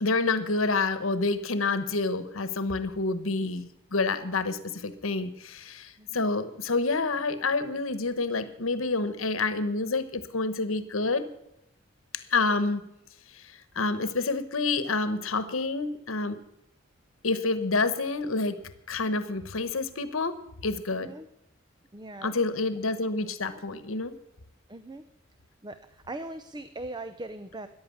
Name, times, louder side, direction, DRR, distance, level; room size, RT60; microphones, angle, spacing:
voice 1, 0.0-11.2 12.3-12.8 13.3-13.4 13.7-16.4 17.2-18.6 18.9-20.4 20.6-21.1 22.2-24.1, left 3 dB, 85° left, 12 dB, 1.1 m, -28 dB
voice 2, 6.0-6.3 20.9-21.3 21.9-22.4 24.7-25.0 25.6-27.7, right 2 dB, 20° right, 11 dB, 0.6 m, -40 dB
14.0 x 10.5 x 7.2 m, 0.82 s
head